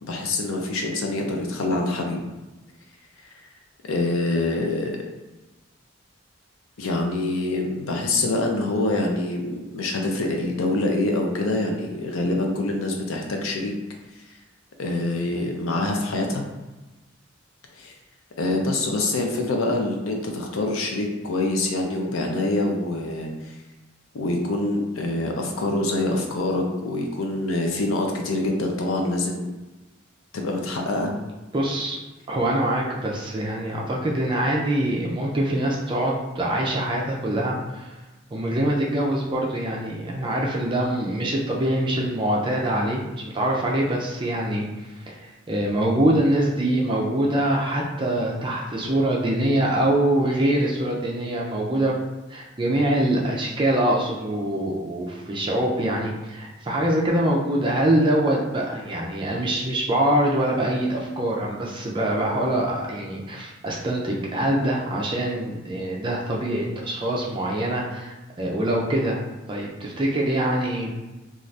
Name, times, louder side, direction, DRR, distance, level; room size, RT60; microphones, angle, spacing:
voice 1, 0.0-2.3 3.9-5.0 6.8-13.7 14.8-16.4 17.7-17.9 18.4-23.5 24.1-29.5 30.3-31.1, left 2 dB, 90° left, 2 dB, 0.5 m, -25 dB
voice 2, 31.5-32.0 32.3-37.9 38.3-44.7 45.1-52.0 52.3-69.2 69.5-70.9, right 1 dB, 25° right, -2 dB, 0.4 m, -24 dB
2.6 x 2.4 x 3.2 m, 1.1 s
head